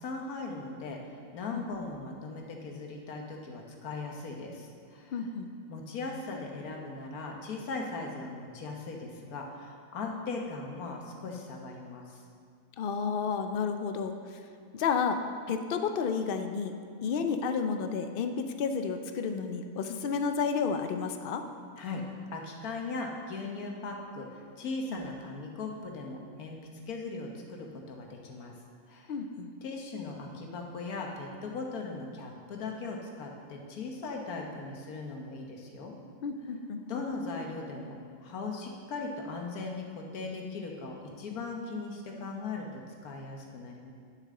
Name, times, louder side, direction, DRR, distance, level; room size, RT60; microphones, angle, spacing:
voice 1, 0.0-5.2 5.7-12.2 21.8-26.6 26.9-28.5 28.9-29.1 29.6-36.0 36.9-43.9, left 3 dB, 85° left, 1 dB, 1.5 m, -39 dB
voice 2, 5.1-5.5 12.8-14.4 14.7-15.2 15.5-16.7 17.0-21.4 24.9-25.0 29.1-29.5 36.2-37.0, left 5 dB, 70° left, 7 dB, 0.5 m, -31 dB
10.5 x 6.5 x 3.7 m, 2.2 s
omnidirectional pair, 1.5 m